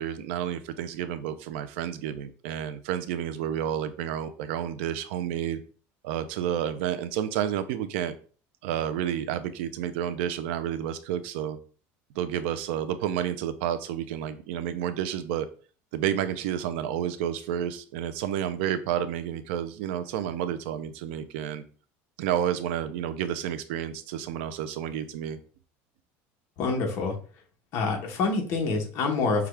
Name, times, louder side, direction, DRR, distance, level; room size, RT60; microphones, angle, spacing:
voice 1, 0.0-5.6 6.0-8.1 8.6-11.6 12.2-15.5 15.9-21.6 22.2-25.4, right 10 dB, 80° right, 11 dB, 0.5 m, -30 dB
voice 2, 26.6-27.1 27.7-29.5, left 4 dB, 45° left, 2 dB, 1.1 m, -26 dB
5.8 x 2.4 x 3.3 m, 0.40 s
cardioid pair, 170°, 6 cm